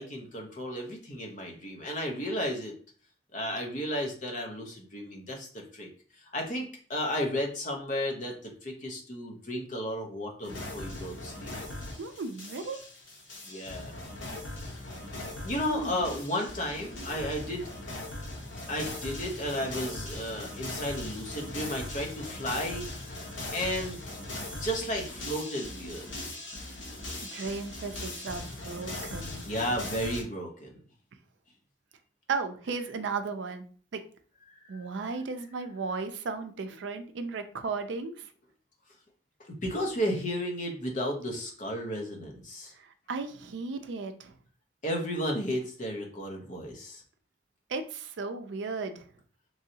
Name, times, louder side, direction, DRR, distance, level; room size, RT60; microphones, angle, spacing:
voice 1, 0.0-2.7 3.3-5.9 6.2-11.5 13.5-13.9 14.6-14.7 15.4-17.7 18.7-24.0 24.6-26.1 29.4-30.8 34.5-34.8 39.5-42.7 44.8-47.0, equal, 40° left, 1 dB, 0.7 m, -33 dB
sound 1, 10.4-30.2, left 2 dB, 80° left, 0.9 m, -40 dB
voice 2, 12.0-12.8 15.7-16.0 27.2-29.4 32.3-33.6 33.9-34.0 34.7-38.3 42.8-44.3 47.7-49.1, right 4 dB, 70° right, 8 dB, 0.4 m, -35 dB
3.1 x 2.7 x 2.7 m, 0.43 s
head